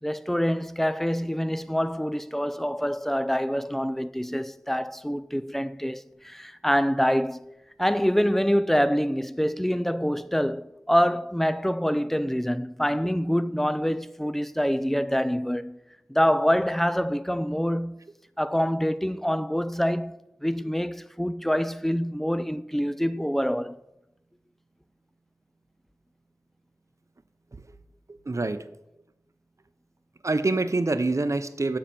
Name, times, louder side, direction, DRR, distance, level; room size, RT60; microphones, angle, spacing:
voice 1, 0.0-7.4 7.8-15.8 16.1-18.0 18.4-20.1 20.4-23.8, equal, 5° left, 0.4 m, -26 dB
voice 2, 28.1-28.7 30.2-31.8, right 2 dB, 60° right, 0.6 m, -26 dB
7.5 x 5.6 x 6.9 m
wide cardioid pair, 50°, 6 cm